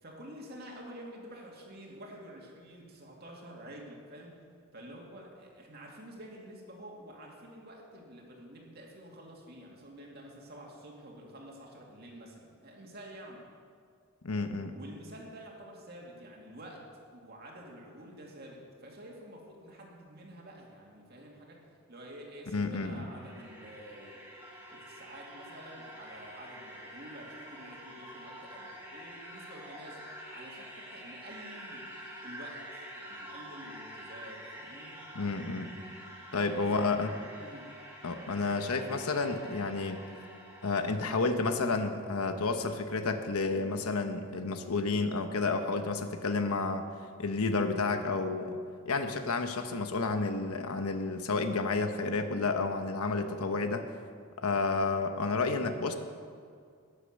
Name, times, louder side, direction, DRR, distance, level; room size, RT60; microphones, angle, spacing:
voice 1, 0.0-4.5 4.7-13.4 14.7-16.9 17.1-21.6 21.9-24.2 24.7-31.9 32.2-35.0 36.3-37.0 37.4-37.7, right 1 dB, 45° right, -1 dB, 2.3 m, -49 dB
voice 2, 14.2-14.8 22.5-23.1 35.1-35.7 36.3-37.1 38.0-40.0 40.6-46.8 47.2-48.6 48.8-53.8 54.4-55.9, left 3 dB, 85° left, 7 dB, 1.0 m, -30 dB
sound 1, 22.9-41.4, equal, 10° right, 2.3 m, -47 dB
13.0 x 10.5 x 6.6 m, 2.2 s
head